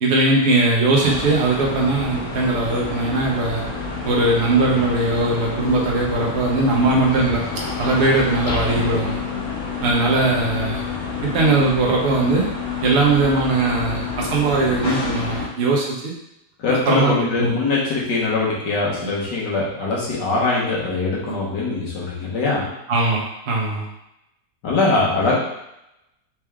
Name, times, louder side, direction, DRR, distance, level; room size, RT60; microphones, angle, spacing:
voice 1, 0.0-3.6 4.0-7.4 7.8-9.2 9.8-10.8 11.2-12.5 12.8-16.1 16.7-17.6 19.0-19.1 22.9-23.9, right 2 dB, 45° right, -2 dB, 1.1 m, -20 dB
sound 1, 1.0-15.5, left 4 dB, 65° left, 1.4 m, -28 dB
voice 2, 16.6-22.7 24.6-25.4, left 3 dB, 85° left, -5 dB, 1.8 m, -22 dB
4.4 x 3.3 x 3.6 m, 0.85 s
omnidirectional pair, 1.8 m